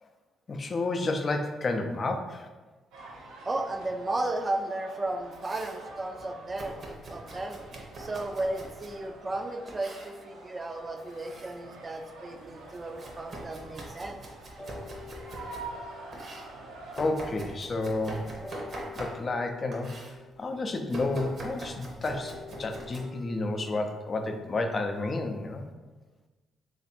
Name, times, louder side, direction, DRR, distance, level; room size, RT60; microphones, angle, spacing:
voice 1, 0.5-2.5 16.9-18.4 19.0-19.9 20.4-25.7, left 2 dB, 45° left, 5 dB, 0.5 m, -31 dB
sound 1, 2.9-17.0, right 2 dB, 85° right, 0.6 m, -47 dB
voice 2, 3.2-7.6 8.0-14.2, right 2 dB, 30° right, 6 dB, 0.4 m, -34 dB
Domestic sounds home sounds, 5.1-5.8 6.6-9.0 9.7-10.2 10.9-11.6 12.0-15.7 16.1-19.4 19.7-20.2 20.9-23.0, right 1 dB, 55° right, 0.8 m, -43 dB
sound 2, 8.2-9.3 10.7-12.4 13.1-13.2 14.6-17.5 18.4-21.1 22.1-25.6, left 5 dB, 25° left, 0.9 m, -50 dB
3.3 x 2.6 x 4.2 m, 1.2 s
supercardioid pair, 60°, 0 cm